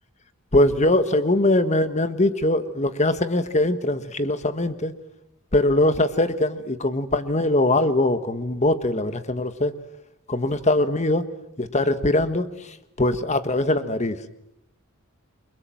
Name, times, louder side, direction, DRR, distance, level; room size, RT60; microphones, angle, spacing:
voice 1, 0.5-4.9 5.5-9.7 10.3-11.3 11.6-14.2, left 1 dB, 30° left, 11 dB, 1.5 m, -22 dB
29.0 x 23.5 x 7.7 m, 0.84 s
head